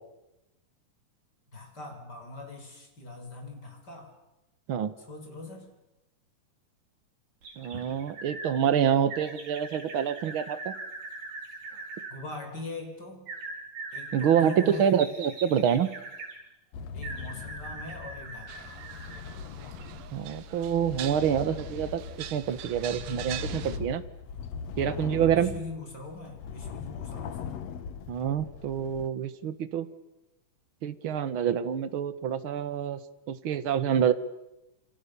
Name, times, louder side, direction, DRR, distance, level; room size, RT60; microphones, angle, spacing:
voice 1, 1.5-4.1 5.0-5.7 12.1-13.3 13.9-15.0 16.9-18.8 25.3-27.6, left 2 dB, 30° left, 3 dB, 6.5 m, -42 dB
sound 1, 7.4-8.5 9.1-12.1 13.3-16.4 17.0-19.3 19.8-19.9, right 3 dB, 75° right, 6.3 m, -41 dB
voice 2, 7.6-10.8 14.1-15.9 20.1-22.0 22.3-24.0 24.8-25.5 28.1-29.9 30.8-33.0 33.3-34.1, right 8 dB, 50° right, 12 dB, 1.8 m, -27 dB
sound 2, 16.7-29.1, left 6 dB, 60° left, 2.2 m, -40 dB
sound 3, 18.5-23.8, right 12 dB, 90° right, 2.9 m, -43 dB
29.5 x 28.5 x 7.0 m, 0.94 s
omnidirectional pair, 3.8 m